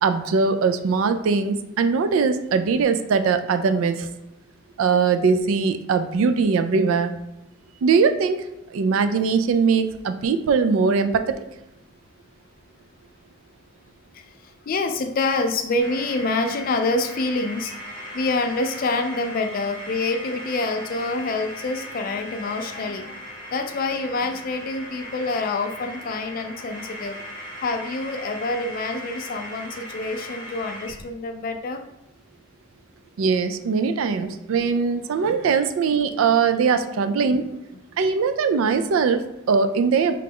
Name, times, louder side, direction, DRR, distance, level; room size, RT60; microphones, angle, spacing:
voice 1, 0.0-4.1 4.8-7.1 7.8-8.4 8.7-11.1 33.2-37.5 38.0-40.2, right 5 dB, 70° right, 9 dB, 0.3 m, -21 dB
voice 2, 14.1-17.7 18.1-27.3 27.6-31.8 33.8-33.9 34.2-34.4 37.0-37.3, left 3 dB, 40° left, 7 dB, 0.3 m, -27 dB
sound 1, 15.8-31.0, left 1 dB, 40° right, 0.9 m, -38 dB
4.9 x 2.2 x 3.5 m, 0.89 s
head